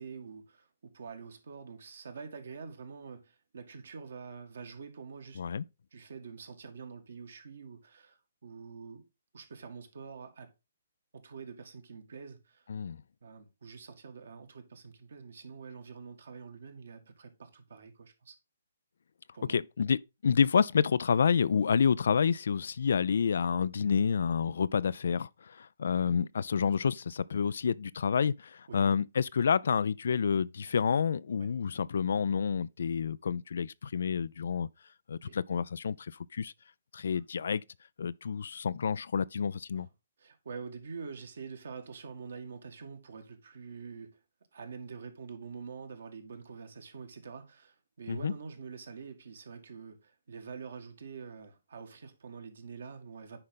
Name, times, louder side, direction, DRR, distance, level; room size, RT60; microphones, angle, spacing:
voice 1, 0.0-5.4 5.9-9.1 9.3-10.5 11.1-12.7 13.2-18.4 19.3-19.6 28.7-28.8 31.4-31.5 35.2-35.4 39.7-39.9 40.2-44.2 44.5-53.4, right 5 dB, 60° right, 1.9 m, -46 dB
voice 2, 19.5-34.7 35.1-36.5 36.9-37.6 38.0-39.9 48.1-48.3, left 6 dB, 60° left, 0.4 m, -29 dB
9.8 x 5.2 x 3.8 m
figure-of-eight pair, 130°, 0 cm